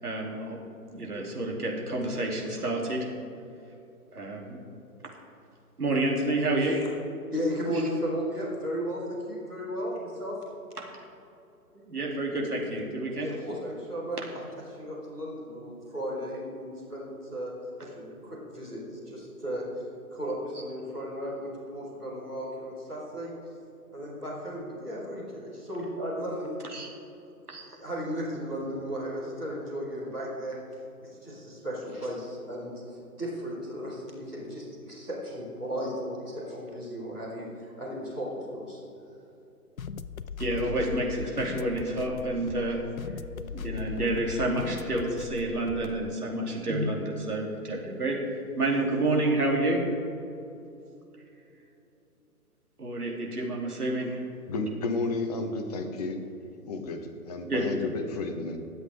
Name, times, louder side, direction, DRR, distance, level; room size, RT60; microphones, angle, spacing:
voice 1, 0.0-0.6 0.9-3.1 4.1-4.6 5.8-6.8 10.9-11.1 11.9-13.3 26.7-26.9 27.5-27.6 40.4-42.8 43.5-49.8 52.8-54.2 57.5-57.6, right 2 dB, 75° right, -1 dB, 3.0 m, -29 dB
voice 2, 7.3-10.4 13.2-17.5 17.8-23.3 23.9-26.6 27.7-30.6 31.0-38.8, equal, ahead, -14 dB, 0.6 m, -35 dB
sound 1, 39.8-46.1, left 6 dB, 65° left, 0.6 m, -38 dB
voice 3, 54.5-56.2 56.7-58.6, left 3 dB, 25° left, 4 dB, 1.0 m, -32 dB
23.0 x 8.0 x 3.6 m, 2.8 s
figure-of-eight pair, 135°, 46 cm